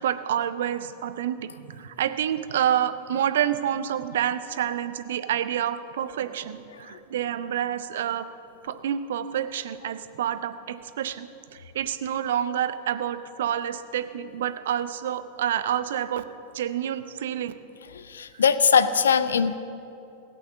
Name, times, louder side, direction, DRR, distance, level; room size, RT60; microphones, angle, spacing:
voice 1, 0.0-8.3 8.6-16.2 16.5-17.5 18.3-18.4, right 10 dB, 60° right, 12 dB, 0.7 m, -28 dB
voice 2, 17.9-19.5, left 6 dB, 70° left, 14 dB, 0.6 m, -21 dB
17.0 x 8.7 x 7.5 m, 2.8 s
figure-of-eight pair, 90°, 0 cm